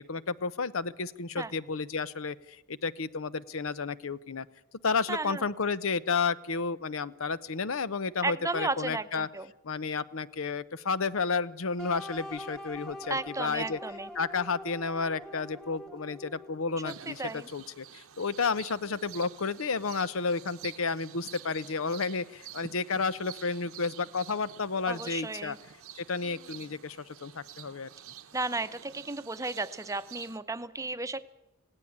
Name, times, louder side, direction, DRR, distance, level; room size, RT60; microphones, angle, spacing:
voice 1, 0.0-4.5 4.8-9.3 9.6-13.8 14.1-25.6 25.9-27.9, left 4 dB, 70° left, 16 dB, 0.8 m, -32 dB
voice 2, 5.1-5.4 8.2-9.5 13.1-14.1 16.8-17.5 24.9-25.6 28.3-31.2, right 3 dB, 15° right, 12 dB, 0.8 m, -34 dB
sound 1, 11.8-16.7, left 1 dB, 5° left, 1.5 m, -44 dB
sound 2, 16.9-30.4, right 10 dB, 85° right, 1.1 m, -49 dB
19.5 x 16.5 x 8.6 m, 0.90 s
head